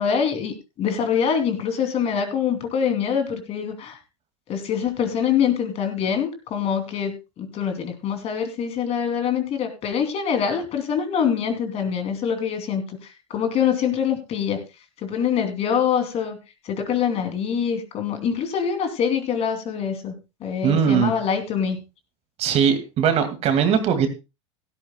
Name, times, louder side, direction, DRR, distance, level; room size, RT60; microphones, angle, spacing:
voice 1, 0.0-4.0 4.5-14.6 15.0-16.4 16.6-20.1 20.4-21.8, left 7 dB, 40° left, 6 dB, 3.0 m, -24 dB
voice 2, 20.6-21.1 22.4-24.1, right 7 dB, 40° right, 8 dB, 2.3 m, -20 dB
16.0 x 13.5 x 2.3 m, 0.27 s
hypercardioid pair, 95°, 16 cm